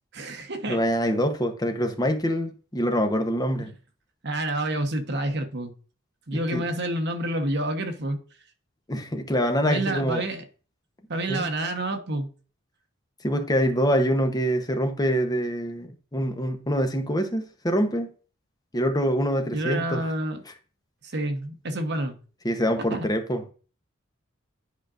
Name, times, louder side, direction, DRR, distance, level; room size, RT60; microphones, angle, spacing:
voice 1, 0.1-0.8 4.2-5.7 6.3-8.2 9.6-10.4 11.1-12.3 19.5-20.4 21.0-22.2 22.9-23.1, right 1 dB, 60° right, 1.1 m, -28 dB
voice 2, 0.7-3.7 6.3-6.6 8.9-10.2 11.3-11.5 13.2-18.1 18.7-20.0 22.4-23.4, equal, 20° left, 0.9 m, -25 dB
10.5 x 4.9 x 2.5 m
head